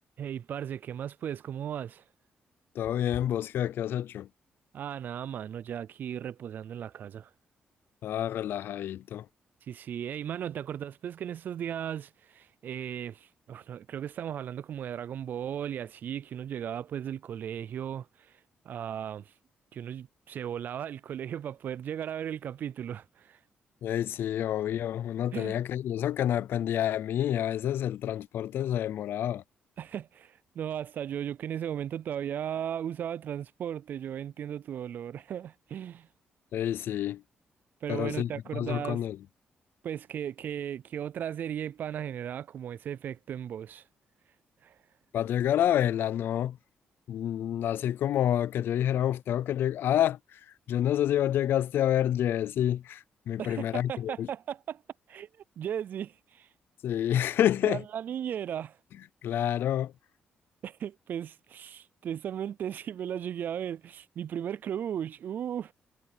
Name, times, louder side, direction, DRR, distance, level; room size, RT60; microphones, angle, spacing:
voice 1, 0.2-2.0 4.7-7.3 9.7-18.3 18.6-19.3 19.7-23.4 25.3-25.6 29.8-36.1 37.8-39.0 39.8-43.8 44.6-44.7 53.4-54.8 55.1-55.3 55.6-56.5 57.6-58.8 60.6-65.7, right 9 dB, 55° right, 0.3 m, -36 dB
voice 2, 2.8-4.3 8.0-9.3 23.8-29.4 36.5-37.2 37.9-39.2 45.1-46.6 47.1-50.4 50.7-54.3 56.8-57.8 59.2-59.9, left 11 dB, 75° left, 0.5 m, -28 dB
wide cardioid pair, 155°, 4 cm